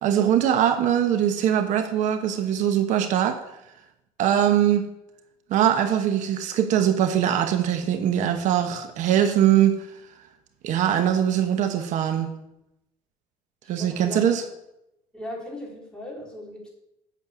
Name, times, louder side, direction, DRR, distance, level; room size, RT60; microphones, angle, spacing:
voice 1, 0.0-3.4 4.2-4.9 5.5-9.8 10.6-12.3 13.7-14.4, right 10 dB, 65° right, 8 dB, 1.1 m, -22 dB
voice 2, 13.6-14.4 15.1-16.7, left 1 dB, 5° left, -2 dB, 3.2 m, -37 dB
8.5 x 6.7 x 8.0 m, 0.86 s
cardioid pair, 140°, 13 cm